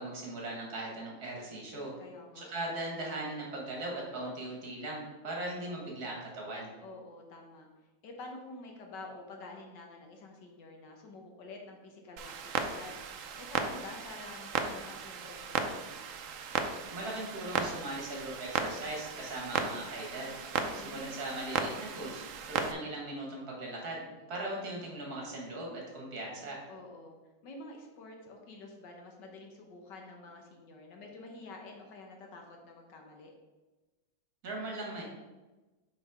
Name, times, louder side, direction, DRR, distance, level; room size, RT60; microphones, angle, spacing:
voice 1, 0.0-1.9 2.4-6.7 16.9-20.4 20.7-24.0 24.3-26.6 34.4-35.0, right 1 dB, 55° right, -1 dB, 1.9 m, -39 dB
voice 2, 2.0-2.5 6.8-7.7 8.0-13.0 13.4-15.8 20.6-21.0 26.7-27.2 27.4-33.3, left 2 dB, 65° left, 2 dB, 1.6 m, -48 dB
Clock, 12.2-22.7, right 6 dB, 90° right, 0.7 m, -36 dB
5.5 x 5.1 x 4.8 m, 1.2 s
omnidirectional pair, 2.1 m